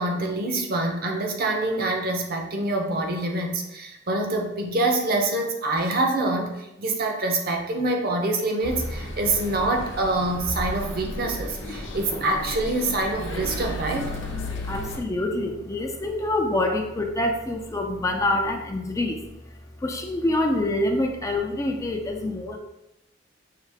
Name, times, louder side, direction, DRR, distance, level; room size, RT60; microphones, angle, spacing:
voice 1, 0.0-14.1, right 2 dB, 55° right, 2 dB, 0.7 m, -26 dB
sound 1, 8.6-15.0, left 1 dB, 85° left, 0.8 m, -33 dB
voice 2, 14.7-19.2 19.8-22.6, left 1 dB, 15° left, 3 dB, 0.4 m, -26 dB
5.6 x 2.4 x 3.5 m, 0.91 s
head